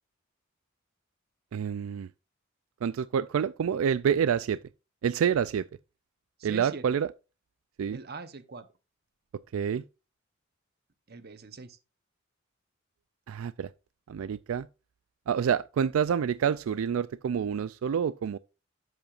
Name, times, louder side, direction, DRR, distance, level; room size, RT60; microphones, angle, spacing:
voice 1, 1.5-2.1 2.8-4.6 5.0-5.7 6.4-7.1 7.8-8.0 9.5-9.8 13.3-13.7 14.1-14.7 15.3-18.4, right 7 dB, 80° right, 0.3 m, -27 dB
voice 2, 6.4-6.8 7.9-8.7 11.1-11.8, right 3 dB, 50° right, 0.9 m, -42 dB
11.5 x 8.0 x 2.5 m
head